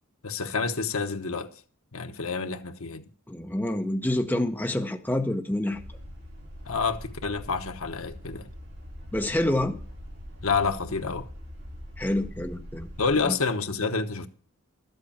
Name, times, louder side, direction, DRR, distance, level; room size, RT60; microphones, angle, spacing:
voice 1, 0.2-1.5 1.9-3.1 6.6-8.5 10.4-11.3 13.0-14.3, left 4 dB, 75° left, 1.1 m, -28 dB
voice 2, 3.3-5.8 9.1-9.7 12.0-12.9 13.2-13.4, left 1 dB, 10° left, 0.8 m, -27 dB
sound 1, 5.7-13.3, equal, 50° right, 3.4 m, -43 dB
13.0 x 8.0 x 7.1 m
head